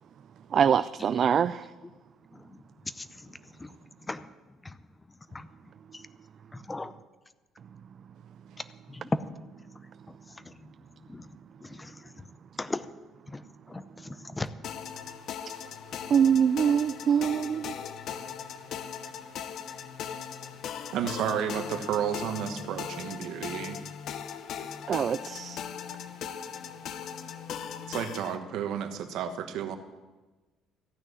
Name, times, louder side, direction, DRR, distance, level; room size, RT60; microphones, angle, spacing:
voice 1, 0.5-1.7 16.1-17.8 24.9-25.6, right 8 dB, 40° right, 14 dB, 0.3 m, -24 dB
voice 2, 3.0-3.7 4.1-4.3 4.6-4.7 5.3-5.5 5.9-6.0 6.5-6.9 8.9-9.2 10.4-10.5 11.1-11.3 11.6-12.3 12.6-12.9 13.3-13.4 13.7-14.5, left 2 dB, 15° left, 13 dB, 0.6 m, -36 dB
sound 1, 14.6-28.4, left 8 dB, 55° left, 0.8 m, -39 dB
voice 3, 20.9-23.8 27.9-29.8, right 8 dB, 70° right, 8 dB, 1.2 m, -32 dB
14.5 x 6.3 x 9.5 m, 1.2 s
cardioid pair, 140°, 0 cm